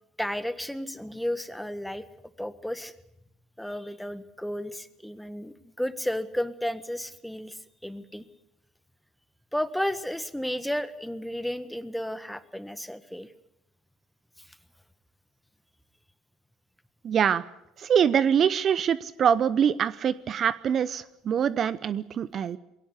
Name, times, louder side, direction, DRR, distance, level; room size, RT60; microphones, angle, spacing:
voice 1, 0.2-2.9 3.6-8.3 9.5-13.3 14.4-14.6, equal, 5° left, 13 dB, 1.5 m, -33 dB
voice 2, 17.0-17.4 17.8-22.6, right 8 dB, 45° right, 17 dB, 0.7 m, -24 dB
21.5 x 17.5 x 8.3 m, 0.86 s
hypercardioid pair, 65°, 0 cm